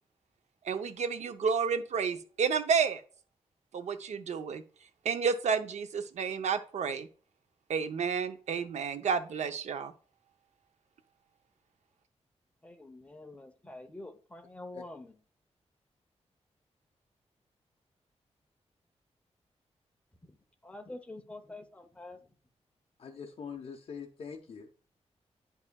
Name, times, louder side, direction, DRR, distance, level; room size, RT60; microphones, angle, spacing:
voice 1, 0.6-3.0 3.7-4.6 5.0-7.1 7.7-9.9, right 6 dB, 80° right, 0.7 m, -30 dB
voice 2, 12.6-15.1 20.6-22.2, left 2 dB, 10° left, 0.8 m, -46 dB
voice 3, 23.0-24.7, left 6 dB, 55° left, 0.8 m, -43 dB
9.4 x 5.5 x 2.3 m
wide cardioid pair, 175°, 12 cm